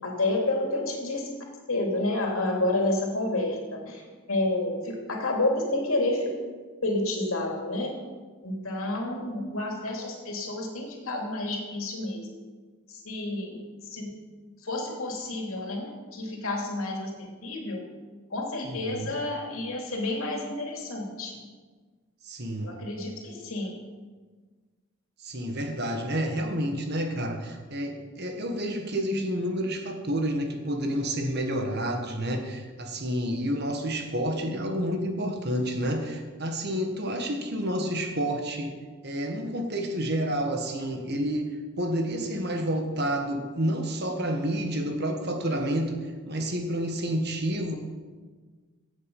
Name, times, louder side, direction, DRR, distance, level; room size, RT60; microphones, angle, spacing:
voice 1, 0.0-1.3 1.7-3.6 3.9-4.0 4.3-6.3 6.8-7.9 8.4-12.3 12.9-13.6 13.9-14.1 14.6-17.8 18.3-21.4 22.6-23.7 29.1-29.2 37.7-37.8, left 2 dB, 75° left, 0 dB, 2.8 m, -29 dB
voice 2, 18.6-19.1 22.2-22.8 25.2-38.8 39.0-47.8, equal, 50° right, 4 dB, 1.6 m, -29 dB
16.0 x 8.3 x 5.4 m, 1.4 s
head